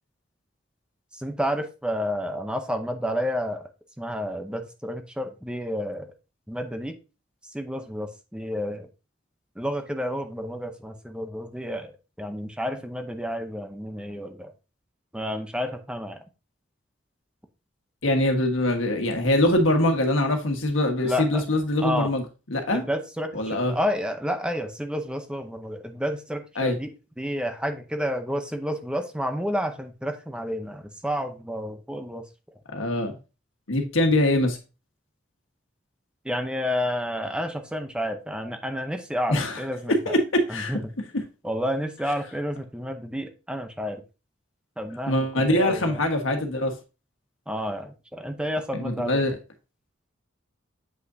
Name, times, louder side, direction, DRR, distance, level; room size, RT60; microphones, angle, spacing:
voice 1, 1.1-3.7 4.0-6.1 6.5-7.0 7.5-8.9 9.6-11.9 12.2-14.5 15.1-16.2 21.0-21.4 21.8-22.1 22.7-26.9 27.2-32.2 36.2-40.1 40.5-40.9 41.4-44.0 44.8-46.0 47.5-49.2, equal, 5° right, 0.6 m, -30 dB
voice 2, 18.0-22.2 22.5-22.8 23.3-23.7 26.6-26.8 32.7-33.1 33.7-34.6 39.3-39.6 39.9-40.8 45.1-46.8 48.7-49.3, left 1 dB, 80° left, 1.4 m, -23 dB
8.0 x 5.5 x 2.7 m
head